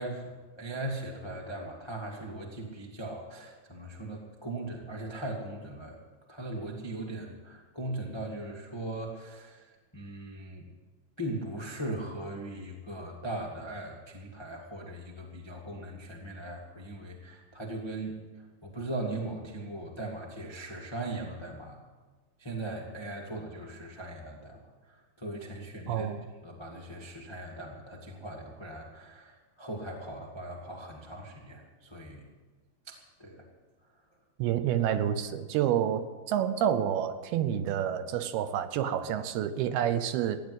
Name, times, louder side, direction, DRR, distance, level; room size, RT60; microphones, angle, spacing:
voice 1, 0.0-6.0 6.3-10.7 11.2-21.8 22.4-26.1 26.4-32.3 32.8-33.4, right 1 dB, 25° left, -1 dB, 0.6 m, -39 dB
voice 2, 25.9-26.3 34.4-40.4, right 10 dB, 80° right, 10 dB, 2.7 m, -29 dB
15.5 x 10.0 x 8.1 m, 1.3 s
omnidirectional pair, 4.6 m